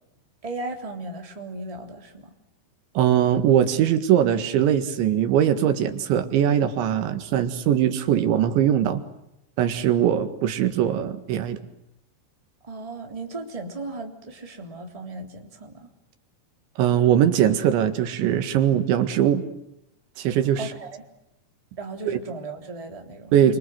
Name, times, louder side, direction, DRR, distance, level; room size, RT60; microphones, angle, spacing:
voice 1, 0.4-2.3 12.6-15.9 20.6-21.0 21.8-23.3, right 2 dB, 10° right, 3 dB, 2.6 m, -36 dB
voice 2, 3.0-9.0 9.6-11.6 16.8-19.4 20.2-20.7 22.1-22.2 23.3-23.6, right 10 dB, 85° right, 8 dB, 4.2 m, -21 dB
29.0 x 25.5 x 7.9 m, 0.84 s
omnidirectional pair, 5.1 m